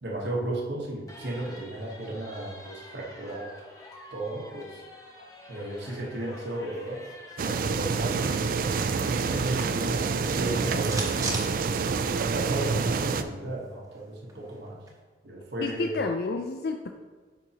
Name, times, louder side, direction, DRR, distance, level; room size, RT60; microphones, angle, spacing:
voice 1, 0.0-3.6 4.1-4.8 5.5-7.0 7.4-8.4 8.8-10.0 10.3-11.5 12.3-14.9 15.2-16.0, right 1 dB, 75° right, -2 dB, 1.2 m, -34 dB
sound 1, 1.1-10.7, left 1 dB, 20° left, 0.9 m, -48 dB
sound 2, 7.4-13.2, right 5 dB, 50° right, 0.3 m, -27 dB
sound 3, 10.6-12.4 12.7-12.8 13.1-15.0, right 2 dB, 20° right, 0.9 m, -39 dB
voice 2, 15.6-16.9, left 3 dB, 60° left, 5 dB, 0.4 m, -30 dB
9.4 x 5.4 x 2.9 m, 1.4 s
head